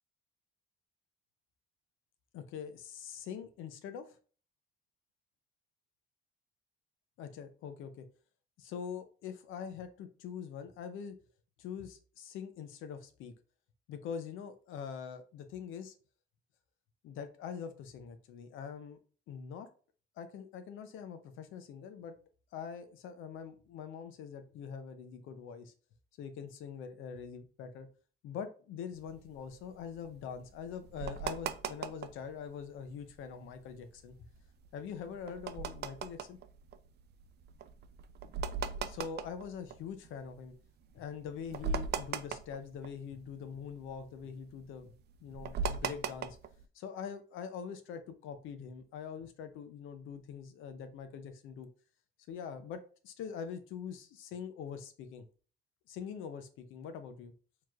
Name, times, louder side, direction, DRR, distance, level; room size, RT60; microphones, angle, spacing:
voice 1, 2.3-4.2 7.2-8.0 8.6-11.2 11.6-13.3 13.9-15.9 17.0-19.0 19.3-19.7 20.2-22.1 22.5-25.7 26.2-27.9 28.2-34.2 34.7-36.4 38.8-40.5 40.9-44.9 45.2-46.4 46.7-51.7 52.3-52.8 53.0-55.2 55.9-57.3, left 7 dB, 90° left, 9 dB, 0.6 m, -44 dB
sound 1, 29.0-32.3 32.7-32.8 32.9-33.3 33.7-40.4 40.9-41.0 41.2-43.3 43.6-46.6, right 6 dB, 55° right, 0.4 m, -39 dB
4.4 x 3.0 x 2.4 m, 0.40 s
cardioid pair, 90°, 20 cm